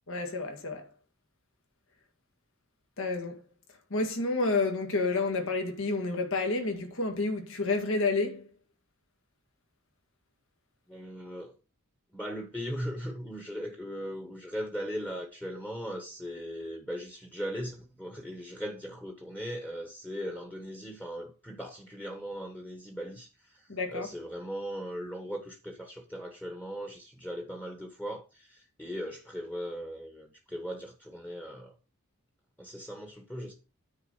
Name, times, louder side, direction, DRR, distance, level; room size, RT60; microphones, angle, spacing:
voice 1, 0.1-0.8 3.0-3.4 3.9-8.4 23.7-24.1, left 3 dB, 65° left, 1.9 m, -29 dB
voice 2, 10.9-11.5 12.1-31.7 32.6-33.5, equal, 5° left, 1.2 m, -39 dB
9.6 x 3.9 x 6.4 m
head